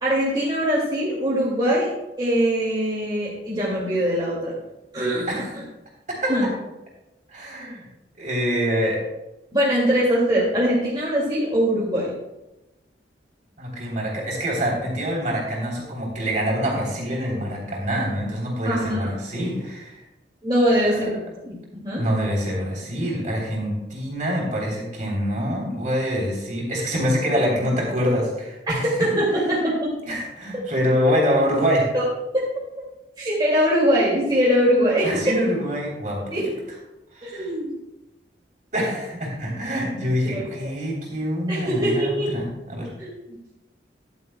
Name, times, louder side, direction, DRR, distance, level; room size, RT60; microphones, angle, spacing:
voice 1, 0.0-1.9 2.2-4.5 4.9-5.4 6.3-6.5 9.5-12.1 18.6-19.0 20.4-21.1 21.4-21.5 21.8-22.0 29.0-29.9 31.9-32.0 32.3-32.4 33.2-35.1 36.3-36.4 37.2-37.7 40.2-40.7 41.5-42.3 43.0-43.1, equal, 25° right, -7 dB, 2.3 m, -22 dB
voice 2, 7.3-7.8 8.2-9.0 13.6-20.0 21.9-29.1 30.1-31.9 35.0-36.4 37.1-37.5 38.7-42.9, equal, 45° right, -2 dB, 3.6 m, -25 dB
13.5 x 11.5 x 2.3 m, 0.99 s
head